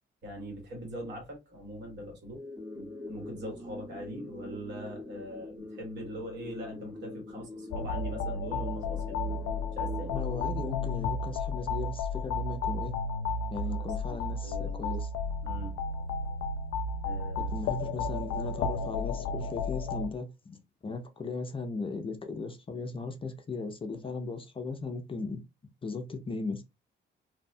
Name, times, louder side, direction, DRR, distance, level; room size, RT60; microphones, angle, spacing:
voice 1, 0.2-2.4 2.7-10.1 14.1-14.2 14.4-14.9 15.4-16.1 17.0-17.5, equal, 65° right, 1.6 m, -42 dB
sound 1, 2.4-11.4, left 2 dB, 15° right, 0.9 m, -44 dB
sound 2, 7.7-20.1, left 3 dB, 90° left, 0.4 m, -33 dB
voice 2, 10.1-12.9 13.5-15.1 17.4-25.4 25.8-26.8, left 3 dB, 25° left, 0.5 m, -37 dB
2.7 x 2.2 x 2.6 m
cardioid pair, 90°, 20 cm